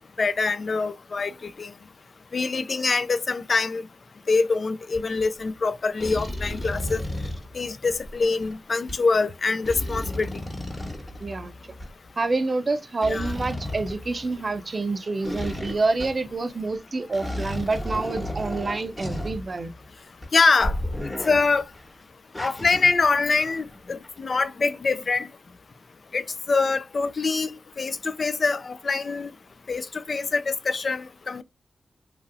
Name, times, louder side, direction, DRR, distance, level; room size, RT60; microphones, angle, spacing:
voice 1, 0.2-1.3 1.6-1.7 2.3-3.8 4.3-7.0 7.5-10.3 13.1-13.3 20.3-20.8 21.2-21.6 22.4-25.3 26.1-29.3 29.7-31.4, left 4 dB, 60° left, 0.4 m, -24 dB
sound 1, 4.9-5.2 6.0-8.5 8.9-9.0 9.6-11.9 13.0-14.6 15.2-16.3 16.7-16.8 17.1-19.9 20.2-20.3 20.6-21.9 22.3-23.8 24.0-24.2, left 1 dB, 25° left, 1.1 m, -33 dB
voice 2, 11.2-11.5 12.2-19.7, right 3 dB, 50° right, 0.4 m, -27 dB
3.0 x 2.5 x 2.5 m
cardioid pair, 60°, 0 cm